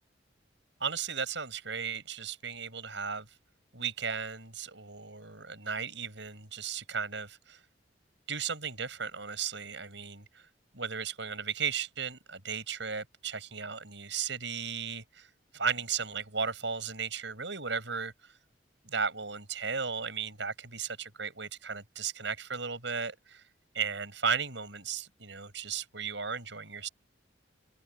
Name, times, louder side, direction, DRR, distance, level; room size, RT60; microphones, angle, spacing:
voice 1, 0.8-3.2 3.7-7.6 8.3-10.2 10.7-15.3 15.5-18.1 18.9-23.4 23.7-26.9, right 6 dB, 70° right, 6.1 m, -35 dB
head